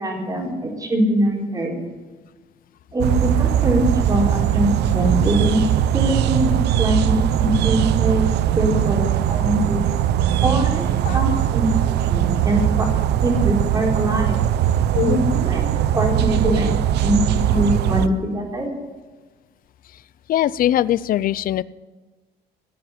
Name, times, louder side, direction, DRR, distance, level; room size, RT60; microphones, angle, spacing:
voice 1, 0.0-1.8 2.9-5.6 5.9-8.3 8.5-9.8 10.4-11.7 12.1-12.9 13.2-14.4 15.0-16.7 17.0-18.8, right 1 dB, 20° right, -1 dB, 4.4 m, -22 dB
sound 1, 3.0-18.1, right 11 dB, 80° right, 0.7 m, -20 dB
voice 2, 16.4-16.8 20.3-21.6, left 12 dB, 55° left, 19 dB, 0.5 m, -21 dB
18.0 x 7.7 x 9.8 m, 1.3 s
cardioid pair, 130°, 17 cm